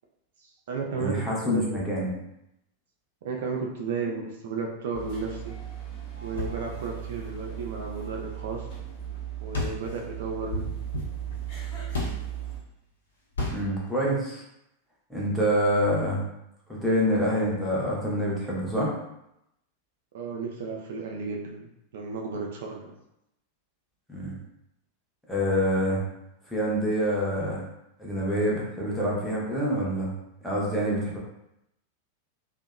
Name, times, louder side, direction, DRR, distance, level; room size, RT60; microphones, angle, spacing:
voice 1, 0.4-1.8 3.2-5.6 6.2-8.7 9.4-10.7 20.1-22.9, right 4 dB, 55° right, 0 dB, 0.3 m, -33 dB
voice 2, 1.0-2.1 4.0-4.1 13.5-14.4 15.1-16.2 16.7-18.9 24.1-24.4 25.3-26.0 26.5-27.6 28.0-30.1 30.4-31.2, equal, ahead, -6 dB, 0.7 m, -26 dB
sound 1, 4.9-12.6, right 10 dB, 45° left, 1.0 m, -37 dB
sound 2, 6.2-8.8 9.1-9.2 9.5-12.4 13.3-13.8, left 1 dB, 70° left, 0.7 m, -34 dB
2.6 x 2.0 x 2.3 m, 0.83 s
figure-of-eight pair, 90°, 0 cm